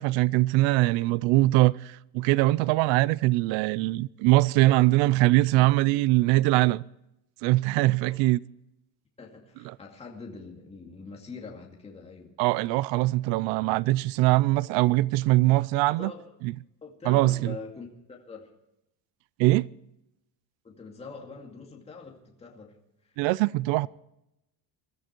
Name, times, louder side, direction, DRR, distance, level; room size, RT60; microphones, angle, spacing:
voice 1, 0.0-6.8 7.4-8.4 12.4-16.1 16.4-16.5 17.1-17.5 19.4-19.7 23.2-23.9, right 19 dB, 85° right, 0.6 m, -22 dB
voice 2, 9.2-12.4 16.0-16.2 16.8-18.5 20.6-22.8 23.0-23.2, left 4 dB, 15° left, 2.3 m, -43 dB
22.0 x 14.0 x 4.5 m
cardioid pair, 175°, 44 cm